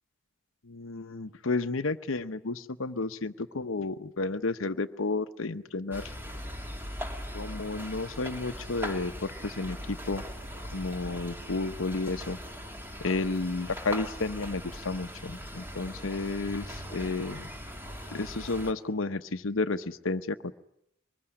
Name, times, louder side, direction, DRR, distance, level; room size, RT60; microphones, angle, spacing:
voice 1, 0.7-6.0 7.3-10.2 10.7-12.4 13.0-17.5 18.1-20.5, left 3 dB, 85° left, 9 dB, 0.9 m, -32 dB
sound 1, 5.9-18.7, equal, 10° right, 2.5 m, -40 dB
sound 2, 7.0-12.6, right 2 dB, 50° right, 5.2 m, -56 dB
24.5 x 21.5 x 9.9 m, 0.78 s
head